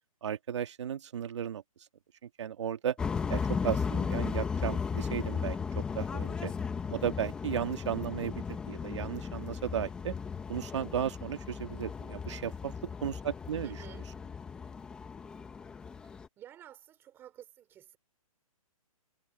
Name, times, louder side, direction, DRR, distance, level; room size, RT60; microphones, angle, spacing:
voice 1, 0.2-1.6 2.2-3.0 3.3-6.5 6.9-10.1 10.5-13.8, right 9 dB, 50° right, 1.8 m, -35 dB
sound 1, 3.0-16.3, left 6 dB, 5° left, 1.0 m, -36 dB
voice 2, 13.6-14.0 16.4-18.0, right 11 dB, 10° right, 4.9 m, -51 dB
hypercardioid pair, 175°, 19 cm